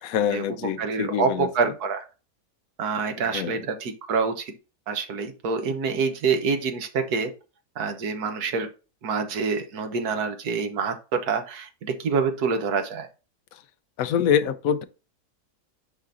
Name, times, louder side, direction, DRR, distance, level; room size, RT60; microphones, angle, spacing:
voice 1, 0.0-1.5 3.3-3.6 13.5-13.6 14.0-14.8, left 8 dB, 70° left, 1.1 m, -25 dB
voice 2, 0.8-2.0 2.8-4.5 4.9-7.3 7.8-8.7 9.0-13.1, right 5 dB, 85° right, 1.6 m, -26 dB
10.5 x 3.8 x 2.6 m
omnidirectional pair, 1.6 m